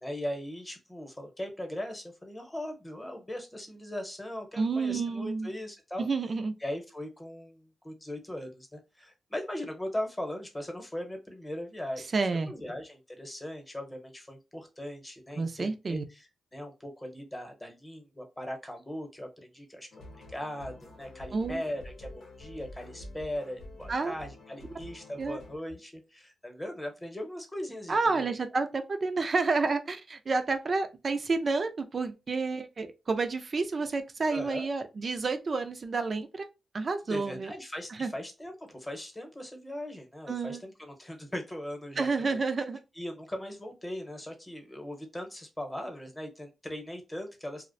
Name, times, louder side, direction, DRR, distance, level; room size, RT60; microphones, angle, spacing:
voice 1, 0.0-6.1 6.6-20.0 20.3-28.3 34.3-34.7 37.1-42.4 43.0-47.7, left 1 dB, 15° left, 0.9 m, -39 dB
voice 2, 4.6-5.5 6.0-6.5 12.1-12.5 15.4-16.0 21.3-21.6 23.9-24.1 25.2-25.4 27.9-36.5 36.7-37.5 38.0-38.1 40.3-40.6 42.0-42.8, right 4 dB, 50° right, 0.4 m, -30 dB
sound 1, 19.9-25.6, left 1 dB, 85° left, 0.8 m, -48 dB
2.4 x 2.1 x 2.5 m
cardioid pair, 70°, 0 cm